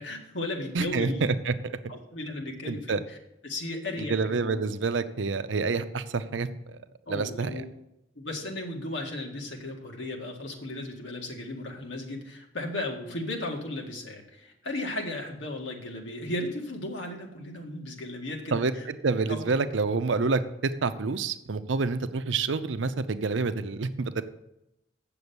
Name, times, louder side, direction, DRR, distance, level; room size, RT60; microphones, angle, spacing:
voice 1, 0.0-1.3 1.9-3.2 3.4-4.6 7.1-7.6 8.2-18.9 19.3-19.5, left 1 dB, 80° left, 1 dB, 1.9 m, -35 dB
voice 2, 0.7-1.5 2.7-3.0 4.0-6.8 7.1-7.6 18.5-24.2, right 4 dB, 90° right, 11 dB, 0.6 m, -28 dB
8.1 x 6.9 x 7.0 m, 0.88 s
head